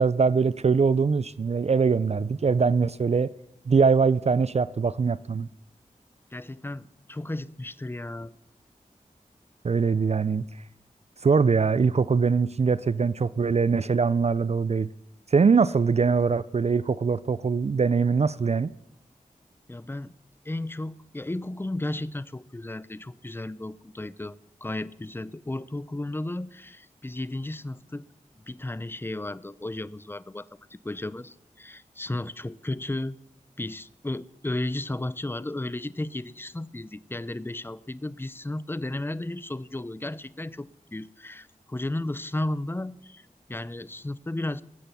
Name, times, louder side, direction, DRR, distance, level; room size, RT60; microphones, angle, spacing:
voice 1, 0.0-3.3 3.7-5.5 9.6-10.4 11.2-14.9 15.3-18.7, right 5 dB, 50° right, 0.4 m, -22 dB
voice 2, 6.3-8.3 19.7-20.1 20.4-24.3 24.6-28.1 28.4-33.2 33.6-44.6, left 1 dB, 15° left, 0.6 m, -34 dB
20.5 x 7.8 x 7.0 m
cardioid pair, 45°, 14 cm